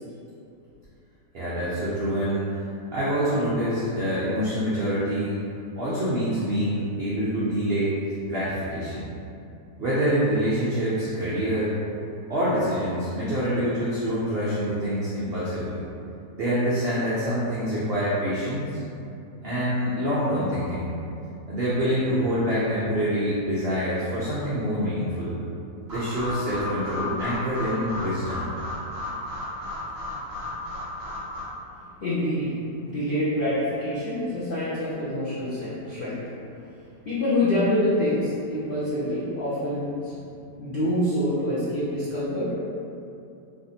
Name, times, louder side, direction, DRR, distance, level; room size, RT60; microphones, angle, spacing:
voice 1, 1.3-2.7 2.9-5.4 5.8-8.0 8.3-9.1 9.8-11.8 12.3-15.8 16.4-18.8 19.4-20.9 21.5-25.4 25.9-28.5, equal, 75° right, -9 dB, 0.5 m, -26 dB
sound 1, 25.9-31.4, left 1 dB, 30° right, 1.1 m, -33 dB
voice 2, 32.0-36.2 37.0-40.1 40.6-42.5, left 1 dB, 85° left, -12 dB, 0.4 m, -26 dB
3.4 x 2.5 x 2.7 m, 2.6 s
omnidirectional pair, 1.8 m